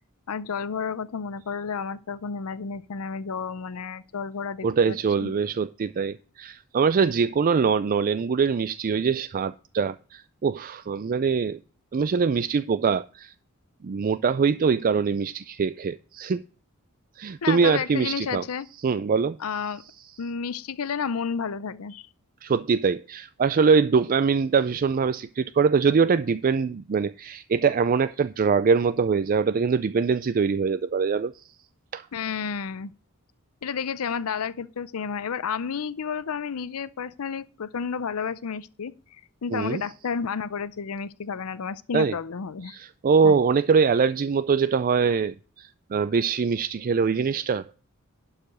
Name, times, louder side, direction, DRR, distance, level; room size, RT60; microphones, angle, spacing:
voice 1, 0.3-5.3 17.4-18.7 19.4-19.8 20.2-22.1 32.1-32.9 33.6-42.8 43.2-43.3, left 6 dB, 85° left, 0.6 m, -31 dB
voice 2, 4.6-11.6 11.9-13.3 13.8-16.4 17.2-18.4 18.8-19.4 22.4-31.4 31.9-32.1 39.5-39.8 41.9-42.1 42.7-47.7, right 5 dB, 40° right, 0.4 m, -23 dB
11.5 x 4.9 x 6.1 m
head